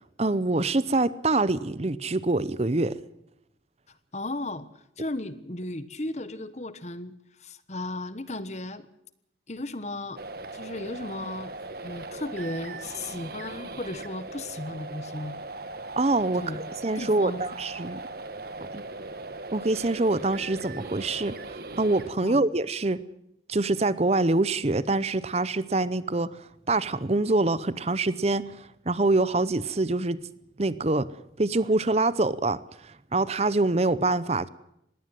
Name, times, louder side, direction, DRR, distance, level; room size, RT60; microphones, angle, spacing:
voice 1, 0.2-3.0 16.0-18.0 18.7-18.8 19.5-23.0 23.5-30.3 30.6-34.5, right 2 dB, 35° right, 17 dB, 0.7 m, -25 dB
voice 2, 4.1-4.7 5.0-7.1 7.4-8.9 9.5-10.2 10.5-11.5 11.8-15.4 16.4-16.6 17.0-17.5 22.2-22.4, left 2 dB, 35° left, 14 dB, 1.2 m, -35 dB
sound 1, 10.2-22.1, right 2 dB, 50° right, 1.7 m, -39 dB
20.5 x 17.0 x 7.8 m, 0.77 s
head